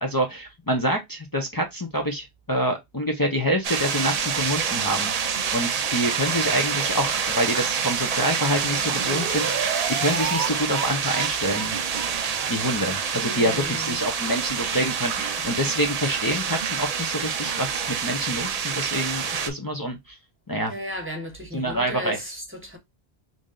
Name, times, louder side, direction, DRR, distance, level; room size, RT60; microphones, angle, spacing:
voice 1, 0.0-5.1 5.5-9.6 10.0-11.8 12.5-20.0 20.5-20.7 21.5-22.2, equal, 25° left, 0.5 m, -26 dB
sound 1, 3.6-19.5, right 6 dB, 50° right, 0.5 m, -27 dB
sound 2, 8.5-10.5 10.7-10.9 11.1-11.3 11.5-11.7 11.9-12.1 12.3-12.5 12.8-12.9 13.2-13.3 13.6-13.7, right 7 dB, 70° right, 1.1 m, -32 dB
voice 2, 13.2-14.0 20.7-22.8, equal, 15° right, 1.0 m, -35 dB
3.2 x 2.6 x 3.7 m
omnidirectional pair, 1.0 m